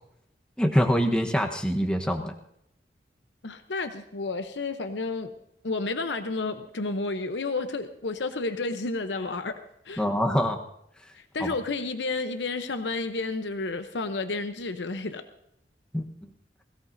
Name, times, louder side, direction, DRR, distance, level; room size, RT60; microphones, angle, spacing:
voice 1, 0.6-2.3 10.0-10.6 11.4-11.5 15.9-16.0, equal, 5° left, 2 dB, 1.1 m, -24 dB
voice 2, 3.4-5.3 5.6-9.6 9.8-10.0 11.1-15.2, left 3 dB, 85° left, 8 dB, 0.9 m, -31 dB
21.5 x 16.5 x 2.7 m, 0.77 s
head